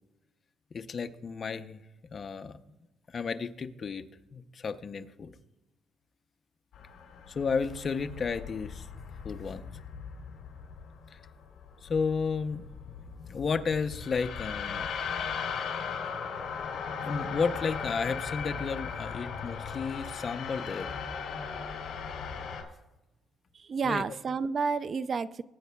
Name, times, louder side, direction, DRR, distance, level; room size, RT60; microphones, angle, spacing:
voice 1, 0.7-1.8 2.1-2.6 3.1-4.0 4.3-5.3 7.3-8.9 9.2-9.6 11.1-11.2 11.8-12.7 13.3-14.8 17.0-20.9 23.8-24.0, left 5 dB, 35° left, 8 dB, 0.6 m, -32 dB
sound 1, 6.7-22.6, left 6 dB, 65° left, 2.5 m, -38 dB
voice 2, 23.5-25.4, right 5 dB, 35° right, 15 dB, 0.3 m, -30 dB
22.0 x 9.2 x 2.3 m, 0.97 s
cardioid pair, 135°, 0 cm